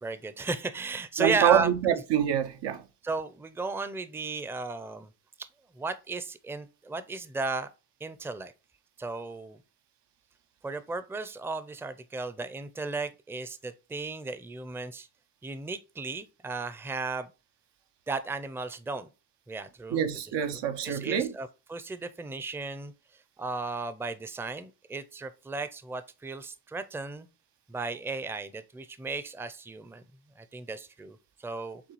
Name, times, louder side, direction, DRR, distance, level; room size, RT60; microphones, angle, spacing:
voice 1, 0.0-1.9 3.0-5.1 5.4-5.5 5.8-7.7 8.0-8.5 9.0-9.6 10.6-15.1 15.4-17.3 18.1-19.1 19.5-20.1 20.5-22.9 23.4-27.3 27.7-30.0 30.4-31.8, right 3 dB, 5° right, 0.4 m, -35 dB
voice 2, 1.2-2.8 19.9-21.3, right 9 dB, 80° right, 0.6 m, -26 dB
6.8 x 2.3 x 3.0 m
cardioid pair, 55°, 41 cm